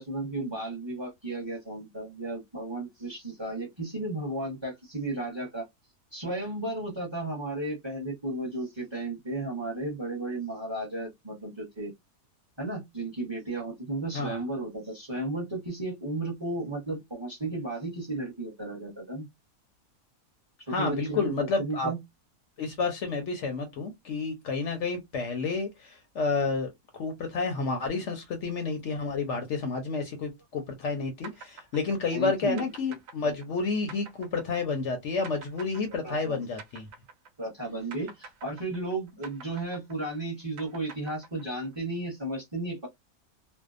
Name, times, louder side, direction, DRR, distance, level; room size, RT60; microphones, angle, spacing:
voice 1, 0.0-5.6 6.1-11.9 12.6-19.3 20.7-22.0 32.1-32.7 36.0-36.4 37.4-42.9, right 2 dB, 20° right, 0.8 m, -34 dB
voice 2, 20.7-21.9 22.6-36.9, left 4 dB, 65° left, 0.8 m, -30 dB
sound 1, 31.2-37.6 37.9-41.8, right 5 dB, 70° right, 1.0 m, -47 dB
2.7 x 2.1 x 2.4 m
omnidirectional pair, 1.5 m